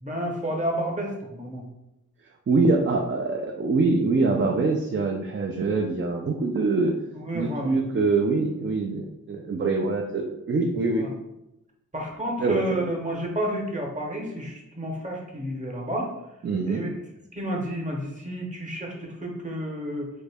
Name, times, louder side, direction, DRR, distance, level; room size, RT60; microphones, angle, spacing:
voice 1, 0.0-1.6 7.2-7.8 11.0-11.1 11.9-16.1 16.7-16.9 17.3-20.1, equal, 20° right, -1 dB, 0.9 m, -30 dB
voice 2, 2.5-6.9 7.3-11.1 12.4-12.8 16.4-16.8, right 3 dB, 40° right, 1 dB, 0.4 m, -24 dB
3.7 x 2.1 x 3.4 m, 0.90 s
wide cardioid pair, 70°, 33 cm